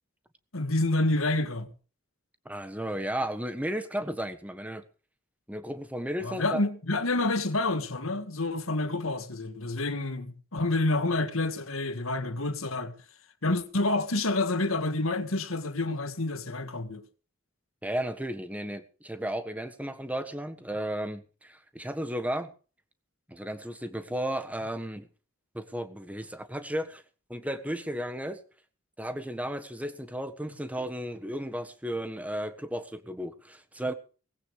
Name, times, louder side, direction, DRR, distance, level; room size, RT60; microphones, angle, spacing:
voice 1, 0.5-1.7 6.2-13.0 13.4-17.0, left 2 dB, 80° left, 1.8 m, -28 dB
voice 2, 2.4-4.8 5.5-6.6 17.8-22.5 23.3-25.1 25.5-27.0 27.3-28.4 29.0-33.9, right 1 dB, 5° right, 1.4 m, -34 dB
18.5 x 16.0 x 3.3 m
head